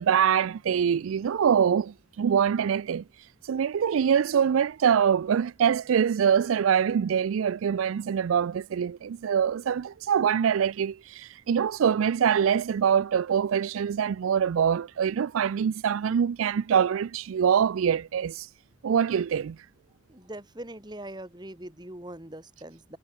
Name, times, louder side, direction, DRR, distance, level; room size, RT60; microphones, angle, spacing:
voice 1, 0.0-3.0 3.4-18.5 18.8-19.6, right 8 dB, 85° right, 0.4 m, -24 dB
voice 2, 20.1-23.0, right 1 dB, 20° right, 2.0 m, -42 dB
head